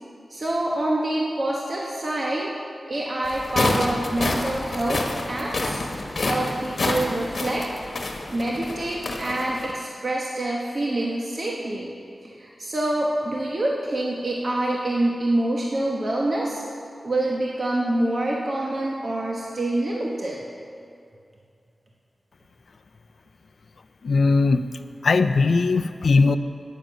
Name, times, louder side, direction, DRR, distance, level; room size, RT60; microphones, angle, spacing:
voice 1, 0.3-2.5 2.9-5.0 5.3-5.8 6.2-7.6 8.3-11.9 12.2-16.6 17.0-20.4, right 1 dB, 45° right, -3 dB, 1.2 m, -26 dB
sound 1, 3.2-9.7, left 2 dB, 55° left, 1.2 m, -28 dB
voice 2, 24.0-24.6 25.0-26.4, left 4 dB, 70° left, 10 dB, 0.4 m, -19 dB
10.5 x 9.1 x 6.3 m, 2.4 s
wide cardioid pair, 120°, 0 cm